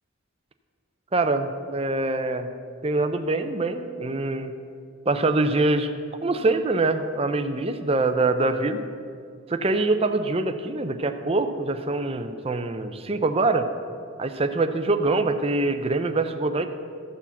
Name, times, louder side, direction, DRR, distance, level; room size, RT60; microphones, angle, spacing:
voice 1, 1.1-2.5 2.8-4.5 5.1-5.9 6.2-8.8 9.5-13.7 14.2-16.7, right 2 dB, 30° right, 8 dB, 0.5 m, -24 dB
13.5 x 4.6 x 7.1 m, 2.3 s
head